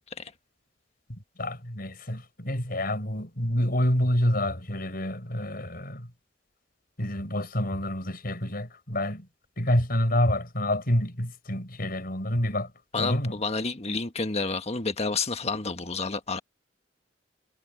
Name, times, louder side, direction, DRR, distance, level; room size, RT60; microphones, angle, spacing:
voice 1, 1.1-6.1 7.0-9.3 9.6-12.7 13.0-13.3, left 1 dB, 55° left, 5.8 m, -27 dB
voice 2, 12.9-16.4, left 4 dB, 35° left, 1.5 m, -30 dB
head